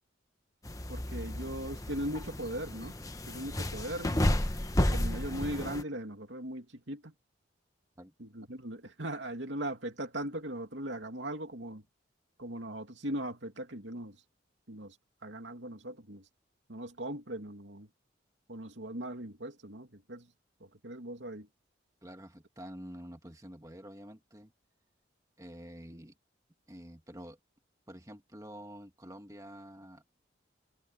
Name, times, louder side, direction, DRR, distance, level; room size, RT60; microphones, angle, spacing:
sound 1, 0.6-5.8, left 1 dB, 20° left, 1.1 m, -32 dB
voice 1, 0.9-3.0 3.3-4.3 4.8-7.1 8.2-11.8 12.4-14.2 14.7-15.0 15.2-16.3 16.7-17.9 18.5-20.3 20.6-21.5, right 1 dB, 70° right, 2.7 m, -39 dB
voice 2, 22.0-24.5 25.4-26.1 26.7-27.4 27.9-30.0, equal, 15° right, 1.9 m, -48 dB
head